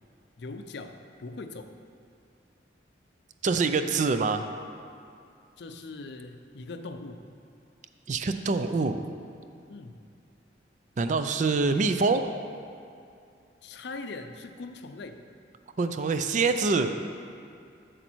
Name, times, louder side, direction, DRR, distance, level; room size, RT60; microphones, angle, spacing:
voice 1, 0.4-1.7 5.6-7.2 9.7-9.9 13.6-15.2, left 3 dB, 60° left, 7 dB, 0.5 m, -41 dB
voice 2, 3.4-4.5 8.1-9.0 11.0-12.3 15.8-16.9, right 4 dB, 40° right, 9 dB, 0.4 m, -25 dB
8.3 x 6.5 x 4.5 m, 2.5 s
head